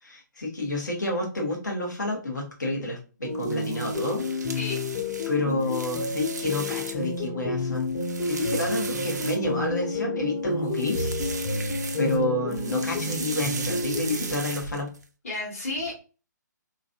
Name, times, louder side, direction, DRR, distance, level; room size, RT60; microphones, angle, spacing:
voice 1, 0.0-4.6 5.3-7.9 8.3-11.6 12.0-14.9, left 2 dB, 65° left, 0 dB, 1.3 m, -29 dB
sound 1, 3.2-14.4, left 2 dB, 25° left, 0.9 m, -30 dB
sound 2, 3.3-7.2 7.6-9.8 10.6-12.2 12.5-15.0, right 4 dB, 60° right, 0.5 m, -37 dB
voice 2, 15.2-16.0, left 2 dB, 45° left, -7 dB, 1.6 m, -32 dB
3.0 x 2.7 x 2.4 m, 0.34 s
figure-of-eight pair, 135°, 10 cm